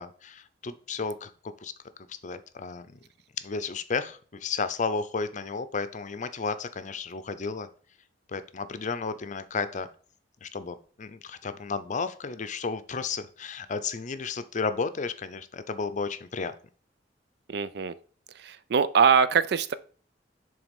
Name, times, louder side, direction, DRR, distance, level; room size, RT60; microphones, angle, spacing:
voice 1, 0.0-1.7 2.2-3.0 3.4-7.7 8.3-9.9 10.4-16.5, left 4 dB, 45° left, 11 dB, 0.6 m, -33 dB
voice 2, 17.5-17.9 18.4-19.7, right 6 dB, 65° right, 15 dB, 0.4 m, -23 dB
7.2 x 3.4 x 5.2 m, 0.43 s
head